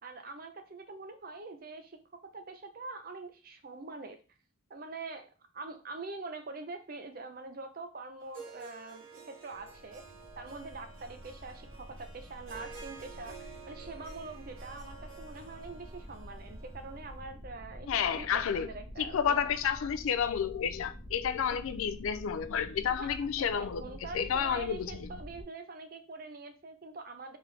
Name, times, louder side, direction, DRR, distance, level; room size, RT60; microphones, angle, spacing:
voice 1, 0.0-4.2 4.7-5.3 5.5-10.0 10.4-19.3 21.5-21.6 23.0-23.1 23.4-27.4, right 3 dB, 45° right, 0.6 m, -44 dB
Harp, 8.2-17.2, right 5 dB, 75° right, 1.0 m, -51 dB
sound 1, 9.5-25.4, equal, 25° left, 0.8 m, -48 dB
voice 2, 17.9-18.7 19.0-23.8 24.1-25.1, left 7 dB, 80° left, 0.4 m, -30 dB
3.7 x 3.4 x 3.2 m
head